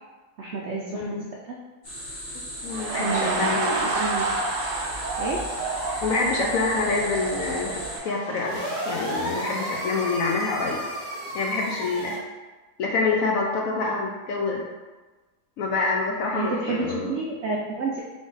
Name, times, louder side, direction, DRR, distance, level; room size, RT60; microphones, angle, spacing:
voice 1, 0.4-1.2 1.5-1.6 3.0-4.3 5.2-5.4 16.3-18.0, right 3 dB, 90° right, -2 dB, 0.6 m, -30 dB
voice 2, 0.9-1.3 2.6-3.9 6.0-10.8 11.3-12.3 12.8-14.6 15.6-17.2, left 3 dB, 70° left, 0 dB, 0.8 m, -26 dB
sound 1, 1.8-8.0, equal, 45° left, 1.6 m, -36 dB
sound 2, 2.7-11.5 11.8-12.0, right 3 dB, 65° right, 0.9 m, -31 dB
sound 3, 8.4-12.2, equal, 85° left, 2.3 m, -33 dB
3.6 x 3.3 x 3.9 m, 1.2 s
omnidirectional pair, 1.8 m